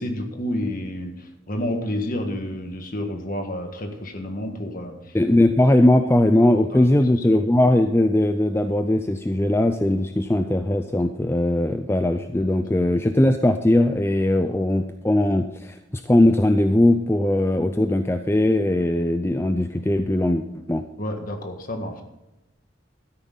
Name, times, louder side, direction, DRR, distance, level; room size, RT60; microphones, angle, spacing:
voice 1, 0.0-5.1 6.7-6.9 21.0-22.0, left 1 dB, 45° left, 5 dB, 1.7 m, -30 dB
voice 2, 5.1-20.8, left 1 dB, 15° left, 8 dB, 0.4 m, -20 dB
13.0 x 10.0 x 4.0 m, 0.94 s
head